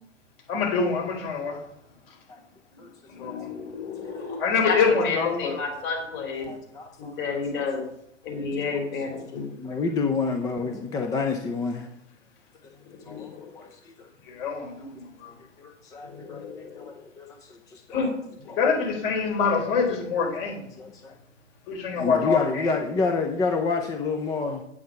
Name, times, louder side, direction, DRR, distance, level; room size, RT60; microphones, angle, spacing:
voice 1, 0.5-1.6 3.2-3.5 4.4-5.6 14.3-15.3 18.6-20.7 21.7-22.7, left 5 dB, 50° left, 1 dB, 4.0 m, -25 dB
voice 2, 3.1-4.8 5.0-6.5 7.2-7.8 8.2-9.4 13.1-13.3 16.1-16.8 17.9-18.1, left 4 dB, 30° left, 2 dB, 3.1 m, -31 dB
voice 3, 4.0-4.3 6.4-7.6 8.3-9.0 9.3-11.9 13.0-14.1 15.6-16.4 16.8-18.1 18.5-18.7 20.8-21.1 22.0-24.6, left 4 dB, 10° left, 4 dB, 0.5 m, -30 dB
8.4 x 8.2 x 5.7 m, 0.76 s
hypercardioid pair, 125°, 38 cm